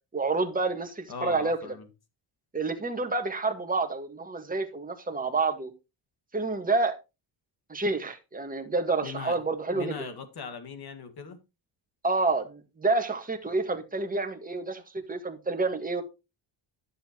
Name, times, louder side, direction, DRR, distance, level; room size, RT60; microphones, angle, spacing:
voice 1, 0.1-1.6 2.5-5.7 6.3-7.0 7.7-10.0 12.0-14.8 15.1-16.0, right 3 dB, 20° right, 1.7 m, -28 dB
voice 2, 1.1-1.9 9.0-9.4 9.7-11.4, left 5 dB, 50° left, 1.9 m, -39 dB
11.0 x 7.8 x 3.0 m
cardioid pair, 105°, 47 cm